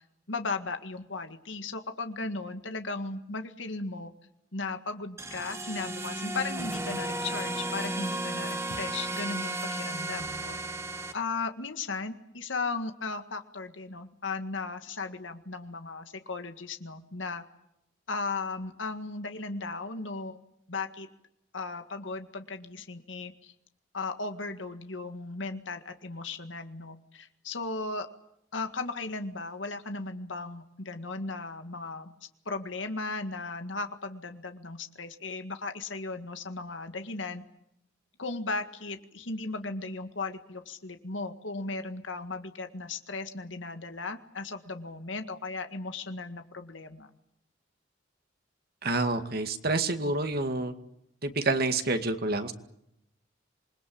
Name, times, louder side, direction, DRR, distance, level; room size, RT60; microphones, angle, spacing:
voice 1, 0.3-4.1 4.5-10.6 11.1-17.4 18.1-20.4 20.7-21.1 21.5-23.5 23.9-28.1 28.5-32.1 32.5-37.4 38.2-47.1, left 3 dB, 85° left, 7 dB, 1.9 m, -36 dB
sound 1, 5.2-11.1, right 2 dB, 15° right, 1.6 m, -34 dB
voice 2, 48.8-50.7 51.2-52.5, right 2 dB, 55° right, 7 dB, 2.2 m, -28 dB
27.5 x 21.5 x 8.7 m, 0.80 s
head